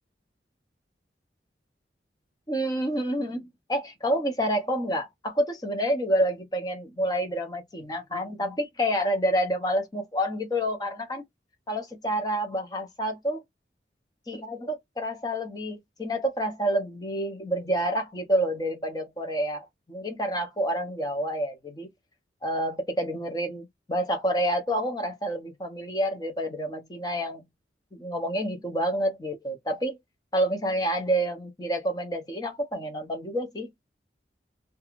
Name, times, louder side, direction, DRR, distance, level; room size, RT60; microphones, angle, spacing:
voice 1, 2.5-11.2 11.7-13.4 14.3-21.9 22.4-27.4 27.9-30.0 30.3-33.7, equal, 20° left, 0.6 m, -28 dB
2.4 x 2.2 x 2.9 m
head